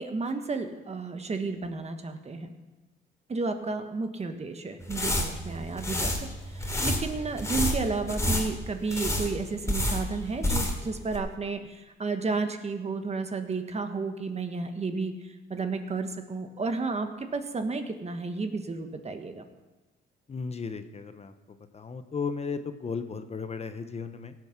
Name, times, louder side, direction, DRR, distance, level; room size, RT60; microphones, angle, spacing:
voice 1, 0.0-2.5 3.3-6.1 6.5-15.1 15.5-19.4, right 4 dB, 35° right, 7 dB, 1.4 m, -32 dB
sound 1, 4.8-10.9 11.1-11.2, left 1 dB, 15° left, 2.6 m, -29 dB
voice 2, 20.3-21.3 21.7-24.3, left 5 dB, 35° left, 9 dB, 0.9 m, -35 dB
17.0 x 7.7 x 6.0 m, 1.2 s
cardioid pair, 90°, 20 cm